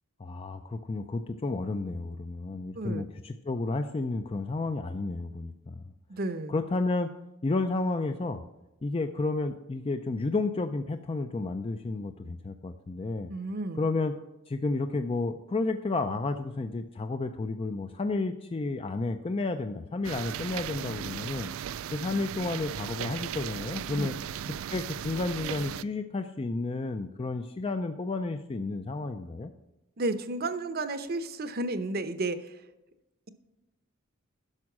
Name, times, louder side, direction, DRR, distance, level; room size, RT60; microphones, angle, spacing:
voice 1, 0.2-5.8 6.5-7.1 7.4-8.4 8.8-13.3 13.8-14.1 14.5-21.5 21.9-24.1 24.7-29.5, left 3 dB, 25° left, 8 dB, 0.4 m, -31 dB
voice 2, 2.8-3.1 6.1-6.6 13.3-13.8 23.9-24.2 30.0-32.6, right 2 dB, 45° right, 12 dB, 0.7 m, -32 dB
sound 1, 20.0-25.8, right 9 dB, 75° right, 0.3 m, -37 dB
11.0 x 6.3 x 6.0 m, 0.97 s
head